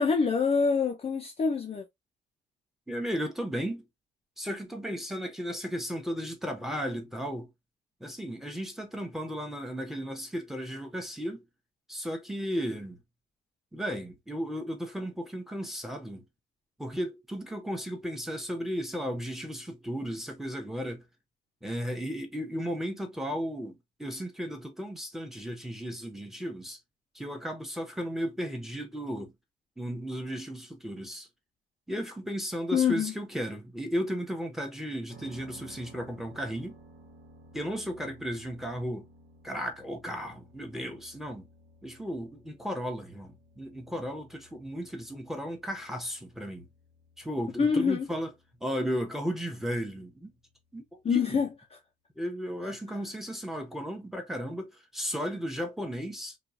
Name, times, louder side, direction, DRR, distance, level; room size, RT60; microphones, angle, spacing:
voice 1, 0.0-1.9 32.7-33.1 47.6-48.1 51.0-51.8 52.6-52.7, left 5 dB, 30° left, 0.5 m, -26 dB
voice 2, 2.9-3.8 4.4-7.5 8.0-11.4 11.9-13.0 13.7-16.2 16.8-21.0 21.6-26.8 27.1-29.3 29.8-31.3 31.9-36.8 37.5-39.1 39.4-41.5 41.8-46.7 47.2-48.3 48.6-50.3 50.7-51.4 52.2-56.4, equal, ahead, 0.9 m, -35 dB
sound 1, 35.1-50.9, right 1 dB, 70° right, 1.1 m, -57 dB
3.0 x 2.3 x 2.4 m
cardioid pair, 90°, 20 cm